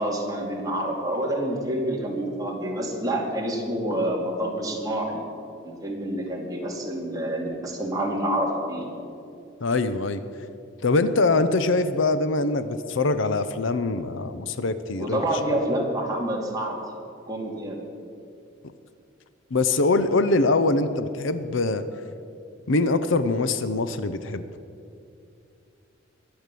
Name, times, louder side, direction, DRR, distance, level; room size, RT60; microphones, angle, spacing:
voice 1, 0.0-5.2 5.6-8.9 15.0-16.8 17.3-17.8, right 1 dB, 20° right, -2 dB, 2.5 m, -27 dB
voice 2, 9.6-10.2 10.8-15.2 19.5-21.9 22.7-24.4, left 3 dB, 70° left, 12 dB, 0.7 m, -23 dB
22.0 x 8.0 x 6.8 m, 2.5 s
head